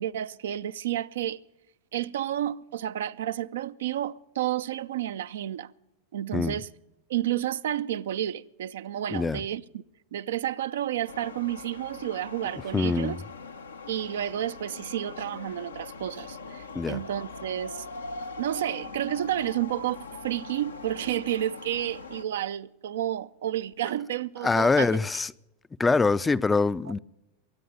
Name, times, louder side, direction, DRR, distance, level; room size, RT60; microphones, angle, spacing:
voice 1, 0.0-1.4 1.9-5.7 6.1-6.7 7.1-9.8 10.1-13.2 13.9-17.9 18.4-24.9, right 12 dB, 70° right, 0.5 m, -31 dB
voice 2, 9.1-9.4 12.7-13.2 16.7-17.0 24.4-25.3 25.8-27.0, left 4 dB, 15° left, 0.5 m, -24 dB
sound 1, 11.1-22.2, left 4 dB, 85° left, 0.9 m, -42 dB
22.5 x 9.2 x 6.9 m
figure-of-eight pair, 90°, 0 cm